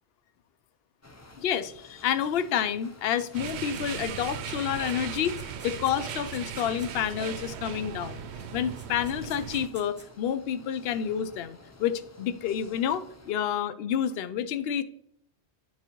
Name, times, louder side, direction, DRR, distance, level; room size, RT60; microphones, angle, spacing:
sound 1, 1.0-13.3, left 2 dB, 20° left, 0.4 m, -51 dB
voice 1, 1.4-5.4 5.6-8.2 8.5-14.8, left 9 dB, 65° left, 13 dB, 0.7 m, -29 dB
sound 2, 3.2-4.2 4.6-7.3 8.4-8.5 8.8-10.1, right 1 dB, 10° right, 0.9 m, -52 dB
sound 3, 3.3-9.7, right 8 dB, 70° right, 0.8 m, -38 dB
9.4 x 4.9 x 3.0 m, 0.66 s
omnidirectional pair, 1.2 m